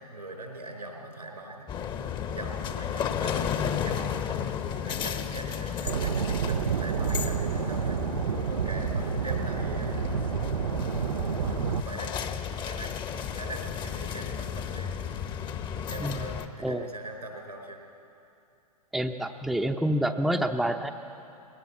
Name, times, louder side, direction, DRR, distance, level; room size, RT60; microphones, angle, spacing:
voice 1, 0.0-1.7 2.2-10.3 11.8-12.3 12.6-14.9 15.8-17.8, right 1 dB, 90° right, 2 dB, 4.7 m, -42 dB
sound 1, 1.7-16.5, left 8 dB, 25° left, 1.0 m, -33 dB
sound 2, 5.8-11.8, right 8 dB, 70° right, 0.5 m, -29 dB
voice 2, 18.9-20.9, right 1 dB, ahead, 5 dB, 0.7 m, -28 dB
20.5 x 19.0 x 7.4 m, 2.6 s
figure-of-eight pair, 105°, 20 cm